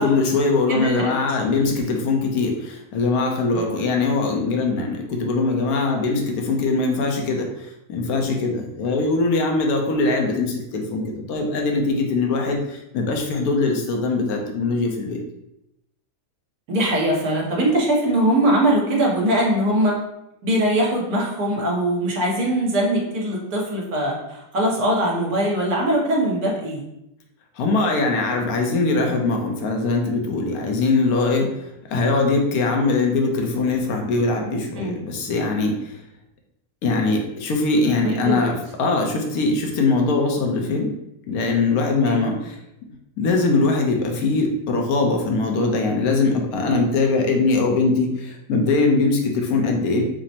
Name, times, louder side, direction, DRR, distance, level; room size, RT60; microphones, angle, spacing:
voice 1, 0.0-7.5 7.9-15.2 27.6-31.5 31.9-36.0 36.8-40.9 41.3-42.6 43.2-50.0, left 3 dB, 70° left, 2 dB, 1.1 m, -21 dB
voice 2, 0.7-1.1 3.5-3.7 16.7-19.9 20.4-26.8 34.8-35.0 38.0-38.5 42.0-42.4, right 1 dB, 70° right, -2 dB, 1.3 m, -21 dB
5.9 x 2.1 x 2.8 m, 0.86 s
omnidirectional pair, 1.7 m